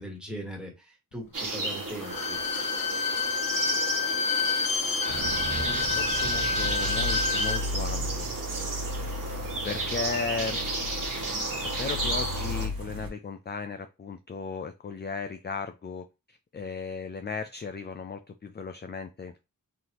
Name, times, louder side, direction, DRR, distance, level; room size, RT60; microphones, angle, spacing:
voice 1, 0.0-2.4, equal, ahead, 1.5 m, -40 dB
sound 1, 1.3-12.7, right 2 dB, 65° right, 1.4 m, -33 dB
Bowed string instrument, 2.0-7.6 7.9-8.0, left 5 dB, 75° left, 0.7 m, -28 dB
sound 2, 5.1-13.1, left 1 dB, 85° right, 0.9 m, -35 dB
voice 2, 5.5-8.3 9.0-9.2 9.6-10.6 11.6-19.4, left 5 dB, 30° left, 0.4 m, -36 dB
4.0 x 3.2 x 2.9 m
wide cardioid pair, 85°, 35 cm